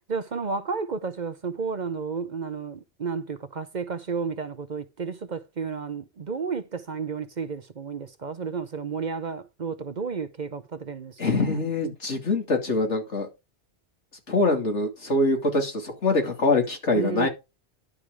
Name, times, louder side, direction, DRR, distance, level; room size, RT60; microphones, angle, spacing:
voice 1, 0.1-11.6 16.9-17.3, right 5 dB, 45° right, 0.8 m, -32 dB
voice 2, 11.2-13.3 14.3-17.3, left 2 dB, 80° left, 2.9 m, -24 dB
12.0 x 4.9 x 4.7 m
omnidirectional pair, 1.2 m